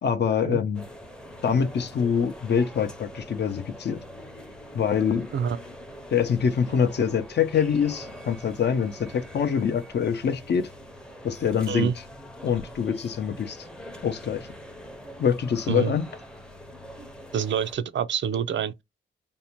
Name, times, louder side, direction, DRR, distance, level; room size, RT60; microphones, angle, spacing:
voice 1, 0.0-0.8 1.4-4.0 4.7-5.3 6.1-10.7 11.2-11.9 12.4-13.7 14.0-14.5 15.2-16.1, left 7 dB, 55° left, 0.5 m, -25 dB
sound 1, 0.7-17.7, equal, 5° left, 0.5 m, -44 dB
voice 2, 17.3-18.8, right 8 dB, 65° right, 0.4 m, -26 dB
2.6 x 2.1 x 2.9 m
wide cardioid pair, 95°, 21 cm